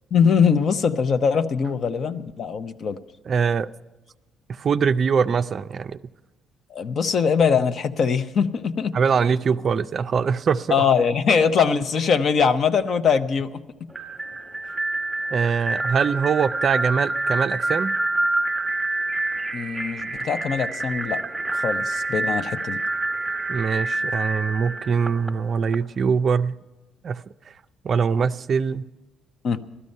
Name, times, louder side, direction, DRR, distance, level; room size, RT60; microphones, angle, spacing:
voice 1, 0.1-3.0 6.7-8.9 10.7-13.6 19.5-21.2 21.5-22.8 29.4-29.6, left 6 dB, 45° left, 10 dB, 0.7 m, -22 dB
voice 2, 3.3-3.7 4.6-6.0 8.9-10.8 15.3-17.9 23.5-26.6 27.0-27.2 27.8-28.8, right 6 dB, 40° right, 11 dB, 0.4 m, -22 dB
sound 1, 13.9-25.7, right 2 dB, 5° right, 1.2 m, -27 dB
16.0 x 12.5 x 5.4 m, 1.1 s
cardioid pair, 135°, 0 cm